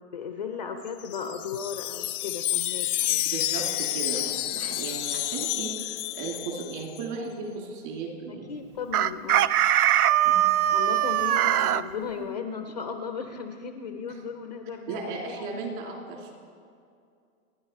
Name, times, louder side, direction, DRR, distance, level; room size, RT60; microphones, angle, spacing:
voice 1, 0.0-3.2 8.3-9.5 10.7-15.6, left 6 dB, 30° left, 6 dB, 0.4 m, -36 dB
Wind chime, 0.9-7.1, left 14 dB, 90° left, 0.6 m, -30 dB
voice 2, 3.3-8.6 10.2-10.5 14.9-16.3, right 4 dB, 35° right, 0 dB, 2.9 m, -36 dB
Chicken rooster, 8.9-11.8, right 12 dB, 85° right, 0.6 m, -21 dB
29.0 x 10.5 x 4.5 m, 2.3 s
hypercardioid pair, 175°, 43 cm